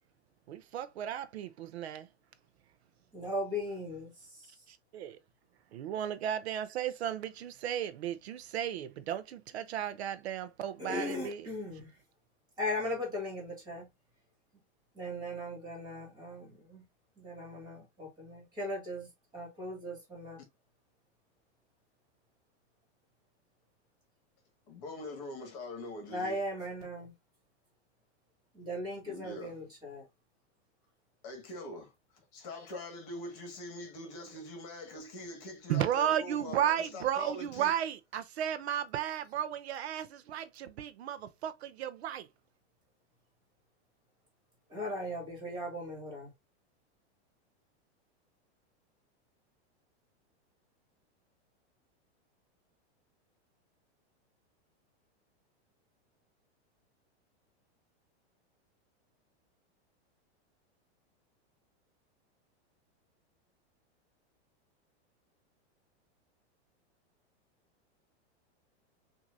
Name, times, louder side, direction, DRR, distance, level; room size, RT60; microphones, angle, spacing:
voice 1, 0.5-2.1 4.7-5.2 5.7-11.5 35.7-42.3, right 10 dB, 70° right, 0.7 m, -34 dB
voice 2, 3.1-4.1 10.8-11.9 12.6-13.9 15.0-16.8 17.2-19.1 19.3-20.4 26.1-27.1 28.5-30.0 44.7-46.3, left 1 dB, 10° right, 2.3 m, -38 dB
voice 3, 24.7-26.4 29.1-29.7 31.2-31.9 32.3-37.7, left 2 dB, 35° left, 1.8 m, -43 dB
6.0 x 2.8 x 2.6 m
supercardioid pair, 170°, 34 cm